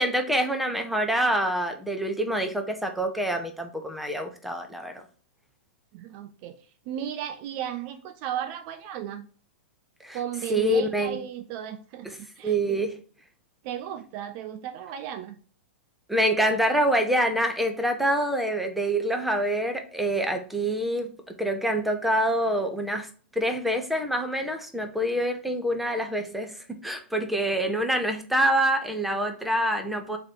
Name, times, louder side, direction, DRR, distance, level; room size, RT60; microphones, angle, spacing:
voice 1, 0.0-5.0 10.0-10.2 10.5-11.2 12.4-12.9 16.1-21.1 21.4-23.1 23.4-30.2, right 1 dB, ahead, 0.8 m, -26 dB
voice 2, 5.9-9.3 10.1-12.8 13.6-15.4, right 10 dB, 45° right, 0.4 m, -35 dB
3.9 x 3.1 x 4.4 m
hypercardioid pair, 110°, 6 cm